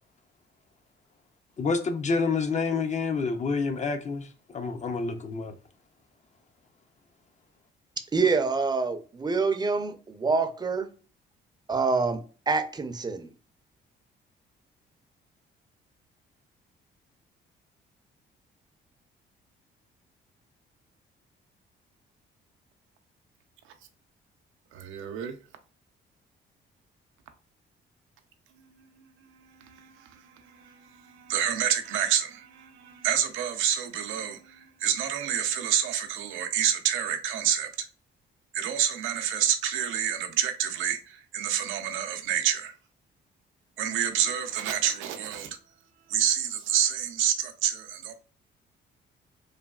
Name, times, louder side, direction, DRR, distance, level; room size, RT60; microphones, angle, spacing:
voice 1, 1.6-4.3 4.5-5.5, left 4 dB, 35° left, 0.5 m, -28 dB
voice 2, 8.1-10.9 11.7-12.2 12.5-13.3, right 4 dB, 20° right, 0.5 m, -26 dB
voice 3, 24.7-25.4 28.8-37.9 38.5-42.7 43.8-45.6 46.1-48.2, right 9 dB, 90° right, 0.5 m, -28 dB
3.2 x 2.2 x 2.3 m
cardioid pair, 90°, 20 cm